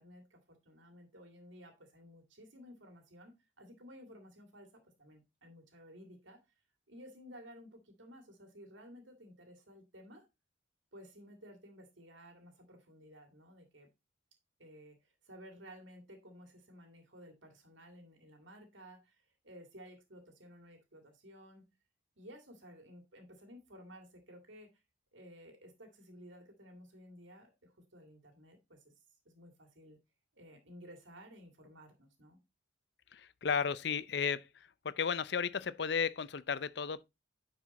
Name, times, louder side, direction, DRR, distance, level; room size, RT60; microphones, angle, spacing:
voice 1, 0.0-6.4 6.9-10.3 10.9-13.9 14.6-21.7 22.2-24.8 25.1-28.8 29.3-30.0 30.3-32.4, equal, 80° right, 2.2 m, -55 dB
voice 2, 33.1-34.5 34.8-37.0, left 6 dB, 60° left, 0.5 m, -34 dB
10.0 x 4.8 x 4.1 m
head